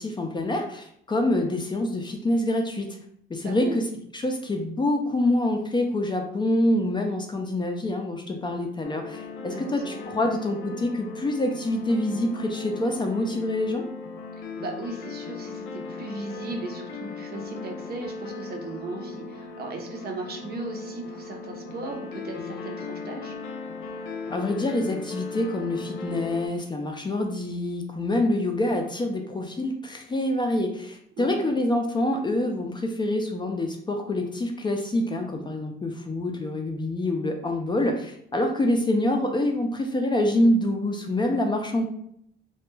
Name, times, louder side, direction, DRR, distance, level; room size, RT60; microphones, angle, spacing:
voice 1, 0.0-2.9 3.3-3.8 4.1-13.8 24.3-41.9, left 1 dB, 25° left, 3 dB, 0.4 m, -26 dB
voice 2, 3.4-3.8 9.4-10.0 14.6-23.3 31.2-31.5, right 2 dB, 50° right, 1 dB, 0.6 m, -37 dB
sound 1, 8.8-26.5, left 4 dB, 85° left, 0.5 m, -38 dB
2.2 x 2.1 x 3.1 m, 0.69 s
cardioid pair, 90°, 20 cm